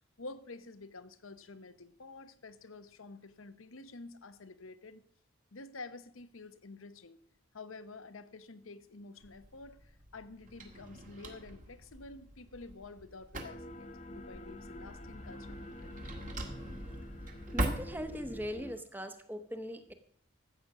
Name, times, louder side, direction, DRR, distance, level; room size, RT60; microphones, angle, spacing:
voice 1, 0.2-5.0 5.5-7.2 7.5-9.8 10.1-16.0, left 3 dB, 85° left, 12 dB, 1.0 m, -49 dB
Drawer open or close, 9.2-18.5, right 1 dB, 40° right, 1.8 m, -42 dB
sound 1, 13.4-18.8, left 1 dB, 35° left, 1.0 m, -47 dB
voice 2, 17.5-19.9, equal, 10° right, 8 dB, 1.0 m, -40 dB
14.0 x 8.2 x 6.0 m, 0.64 s
head